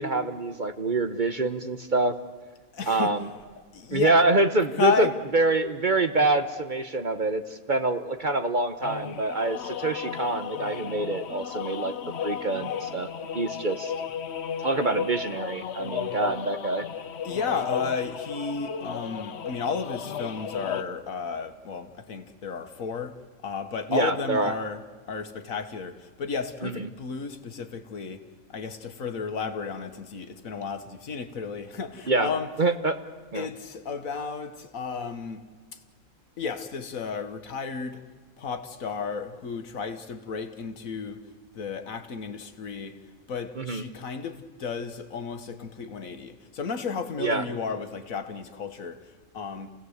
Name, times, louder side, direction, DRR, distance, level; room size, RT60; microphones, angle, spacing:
voice 1, 0.0-2.2 2.9-3.3 3.9-5.1 5.3-11.9 12.2-13.1 13.3-13.9 14.6-16.8 23.9-24.5 26.6-26.9 32.1-32.3 32.6-33.0 33.3-33.5 43.6-43.8 47.2-47.4, right 2 dB, 40° right, 0.9 m, -25 dB
voice 2, 2.7-3.2 3.7-4.2 4.8-5.1 14.2-14.5 17.2-24.8 25.1-28.2 28.5-32.5 33.3-35.4 35.7-35.8 36.4-38.0 38.4-41.2 41.5-43.0 43.3-49.7, left 5 dB, 75° left, 1.7 m, -33 dB
sound 1, 8.8-20.8, left 7 dB, 55° left, 1.0 m, -34 dB
28.5 x 17.0 x 8.1 m
omnidirectional pair, 1.5 m